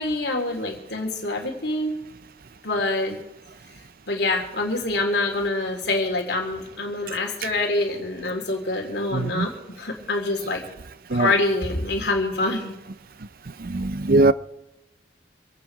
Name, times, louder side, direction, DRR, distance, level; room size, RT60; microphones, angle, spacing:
voice 1, 0.0-1.9 2.6-3.2 4.1-9.5 9.8-10.6 11.1-12.7, left 2 dB, 70° left, 3.4 m, -25 dB
voice 2, 9.1-9.5 11.1-11.3 13.6-14.3, right 2 dB, 55° right, 0.6 m, -21 dB
26.5 x 9.0 x 4.8 m
head